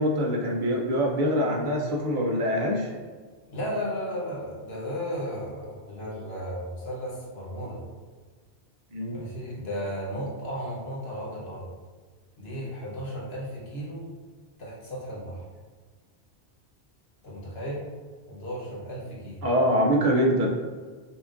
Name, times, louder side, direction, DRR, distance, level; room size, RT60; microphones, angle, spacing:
voice 1, 0.0-2.9 8.9-9.2 19.4-20.5, equal, 55° right, -1 dB, 0.7 m, -24 dB
voice 2, 3.5-7.8 9.1-11.7 12.4-14.0 14.6-15.4 17.2-17.8 18.3-19.4, equal, 75° left, -5 dB, 1.3 m, -34 dB
5.6 x 2.4 x 2.5 m, 1.5 s
omnidirectional pair, 1.0 m